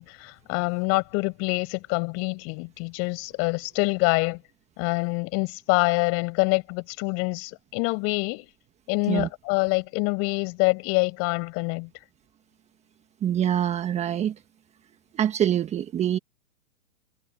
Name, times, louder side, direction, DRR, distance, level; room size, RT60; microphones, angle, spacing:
voice 1, 0.0-4.4 4.8-8.5 8.9-11.9, left 31 dB, 35° left, 6.7 m, -26 dB
voice 2, 13.2-14.3 15.1-16.2, right 10 dB, 15° right, 1.4 m, -25 dB
hypercardioid pair, 135°, 42 cm